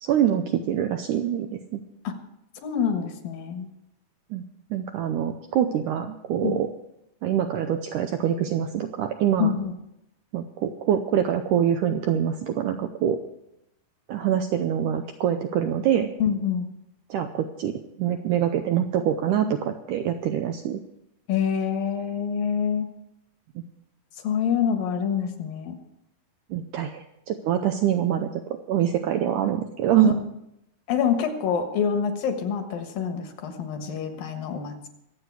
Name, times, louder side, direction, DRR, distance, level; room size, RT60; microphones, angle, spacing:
voice 1, 0.0-1.8 4.3-4.4 4.7-6.7 7.2-9.5 10.3-13.2 14.1-16.1 17.1-20.8 26.5-28.4 28.7-30.1, right 10 dB, 80° right, 6 dB, 1.9 m, -25 dB
voice 2, 2.6-3.7 6.4-6.6 9.4-9.7 16.2-16.7 21.3-22.9 24.2-25.8 30.0-30.1 30.9-34.9, left 7 dB, 70° left, 6 dB, 3.0 m, -26 dB
23.5 x 8.2 x 4.7 m, 0.84 s
omnidirectional pair, 4.4 m